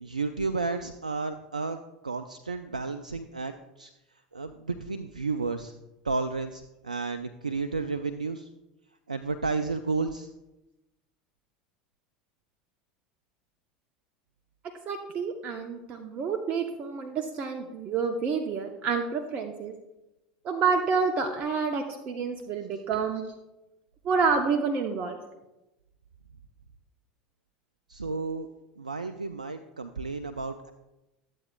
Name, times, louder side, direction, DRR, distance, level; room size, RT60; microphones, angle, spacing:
voice 1, 0.0-1.8 2.0-3.9 4.3-5.7 6.0-8.5 9.1-10.3 27.9-28.5 28.8-30.7, right 4 dB, 90° right, 10 dB, 0.3 m, -32 dB
voice 2, 14.9-19.7 20.4-23.2 24.0-25.2, right 5 dB, 40° right, 4 dB, 0.8 m, -28 dB
13.5 x 8.1 x 2.2 m, 0.98 s
figure-of-eight pair, 75°, 4 cm